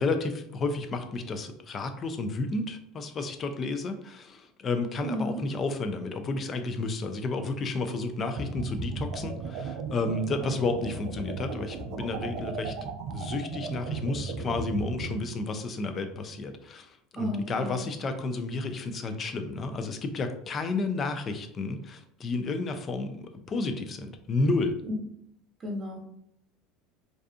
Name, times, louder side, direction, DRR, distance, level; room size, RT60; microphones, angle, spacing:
voice 1, 0.0-12.7 13.1-24.8, left 3 dB, 35° left, 8 dB, 0.4 m, -31 dB
voice 2, 5.0-5.4 17.2-17.9 24.8-24.9 25.6-26.1, equal, 35° right, 0 dB, 0.8 m, -33 dB
sound 1, 8.4-15.2, right 4 dB, 65° right, 0.3 m, -36 dB
2.6 x 2.3 x 2.4 m, 0.75 s
supercardioid pair, 105°, 0 cm